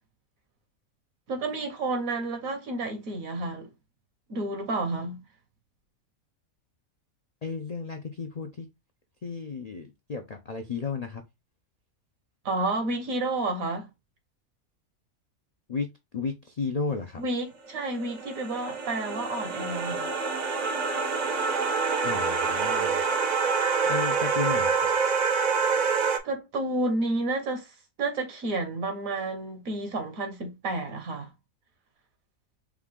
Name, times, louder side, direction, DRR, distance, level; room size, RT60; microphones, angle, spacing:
voice 1, 1.3-3.7 4.3-5.2 12.4-13.9 17.2-20.1 26.2-27.7 28.0-31.3, right 2 dB, 75° right, 1.5 m, -30 dB
voice 2, 7.4-8.7 9.2-11.2 15.7-15.9 16.1-17.2 22.0-23.0 23.9-24.9, left 4 dB, 60° left, 0.4 m, -33 dB
sound 1, 17.7-26.2, right 5 dB, 45° right, 0.6 m, -26 dB
4.7 x 2.4 x 3.6 m
omnidirectional pair, 1.4 m